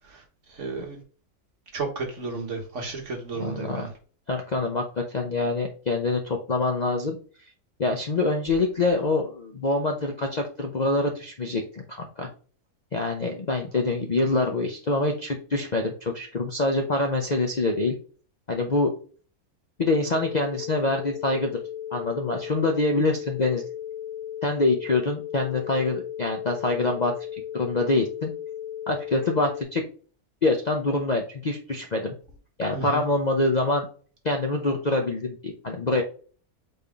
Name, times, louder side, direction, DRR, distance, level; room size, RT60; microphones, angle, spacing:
voice 1, 0.5-1.0 1.7-3.9 32.7-33.0, right 4 dB, 55° right, 1 dB, 1.6 m, -32 dB
voice 2, 3.4-3.9 4.3-7.2 7.8-12.3 12.9-17.9 18.5-18.9 19.8-21.5 21.9-23.6 24.4-27.1 27.5-28.3 28.9-29.8 30.4-32.1 32.6-33.9 34.2-36.0, left 2 dB, 40° left, 2 dB, 0.6 m, -25 dB
sound 1, 20.1-29.6, left 10 dB, 85° left, 1.7 m, -36 dB
4.3 x 3.5 x 3.5 m, 0.40 s
omnidirectional pair, 1.6 m